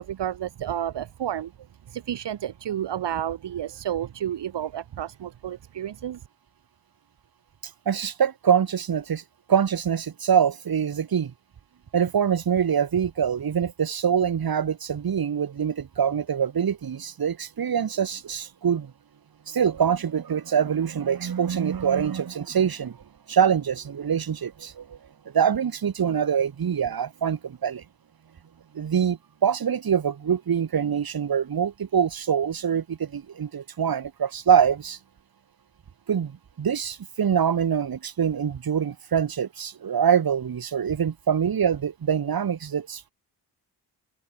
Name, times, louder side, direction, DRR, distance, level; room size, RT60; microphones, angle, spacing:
voice 1, 0.0-1.5 1.9-6.2, right 10 dB, 70° right, 3.0 m, -31 dB
voice 2, 7.9-9.2 9.5-11.3 11.9-18.9 19.5-23.0 23.3-25.0 25.3-27.8 28.7-35.0 36.1-43.1, right 7 dB, 55° right, 5.3 m, -24 dB
cardioid pair, 110°, 43 cm